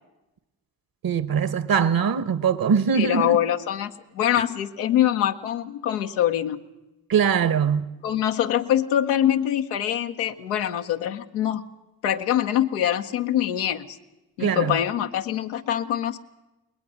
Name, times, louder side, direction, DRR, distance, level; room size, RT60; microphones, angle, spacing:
voice 1, 1.0-3.4 7.1-7.8 14.4-14.8, right 7 dB, 50° right, 1.2 m, -22 dB
voice 2, 3.0-6.6 8.0-11.7 12.0-14.0 14.4-16.2, left 11 dB, 90° left, 0.9 m, -24 dB
21.5 x 20.0 x 6.2 m
hypercardioid pair, 40°, 45 cm